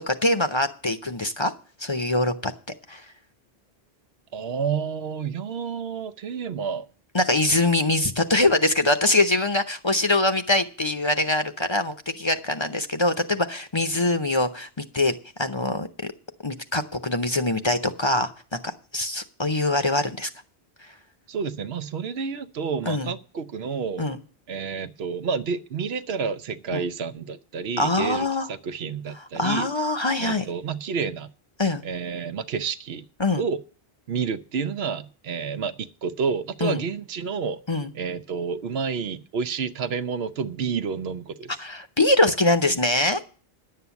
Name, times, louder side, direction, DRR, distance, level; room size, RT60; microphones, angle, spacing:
voice 1, 0.1-1.5 1.8-2.5 2.9-3.0 7.1-16.1 16.4-20.3 22.9-23.1 24.0-24.2 26.7-26.9 27.8-28.5 29.2-30.5 31.6-31.8 33.2-33.4 36.6-36.8 37.7-37.9 41.6-43.2, left 2 dB, 30° left, 0.7 m, -23 dB
voice 2, 4.3-6.9 21.3-24.1 24.5-29.7 30.2-31.3 31.8-33.0 33.4-33.6 34.1-37.6 37.9-41.6, right 6 dB, 80° right, 1.0 m, -29 dB
10.5 x 7.7 x 7.0 m
omnidirectional pair, 1.0 m